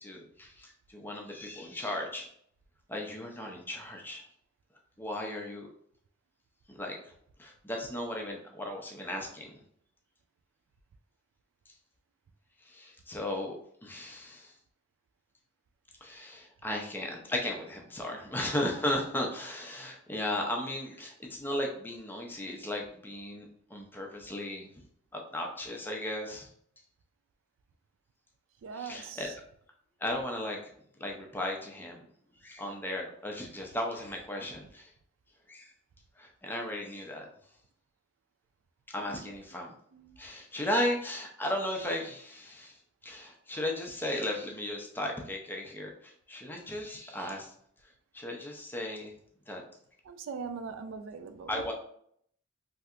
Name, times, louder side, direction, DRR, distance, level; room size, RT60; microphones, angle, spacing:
voice 1, 0.0-2.3 2.9-4.2 5.0-5.7 6.7-7.0 7.4-9.5 12.7-14.5 16.0-24.7 25.1-26.5 28.7-29.3 30.0-30.6 31.0-32.0 32.4-34.9 35.5-35.7 36.2-37.3 38.9-39.7 40.2-42.7 43.0-47.5 48.1-49.1 49.5-49.6 51.5-51.7, left 1 dB, 10° left, 0 dB, 0.5 m, -35 dB
voice 2, 28.6-29.3 39.1-39.3 39.9-40.2 50.0-51.6, right 5 dB, 80° right, 9 dB, 0.3 m, -41 dB
3.3 x 2.7 x 2.4 m, 0.67 s
head